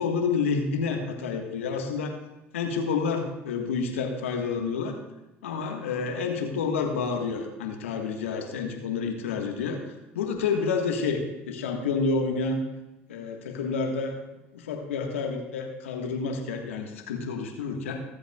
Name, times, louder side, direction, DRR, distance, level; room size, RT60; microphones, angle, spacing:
voice 1, 0.0-2.2 2.5-5.0 5.4-12.6 13.1-14.2 14.5-18.0, left 5 dB, 85° left, 3 dB, 1.5 m, -29 dB
23.0 x 7.9 x 2.4 m, 0.99 s
hypercardioid pair, 70°, 7 cm